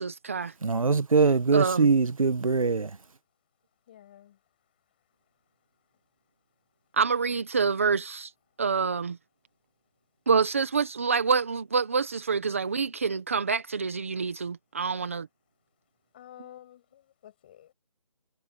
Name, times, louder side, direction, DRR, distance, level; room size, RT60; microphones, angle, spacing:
voice 1, 0.0-0.5 1.5-1.9 6.9-8.3 8.6-9.2 10.3-15.3, right 5 dB, 20° right, 1.2 m, -27 dB
voice 2, 0.6-2.9, right 4 dB, 60° right, 1.1 m, -22 dB
voice 3, 3.9-4.4 16.1-17.7, left 11 dB, 15° left, 6.5 m, -50 dB
figure-of-eight pair, 175°, 20 cm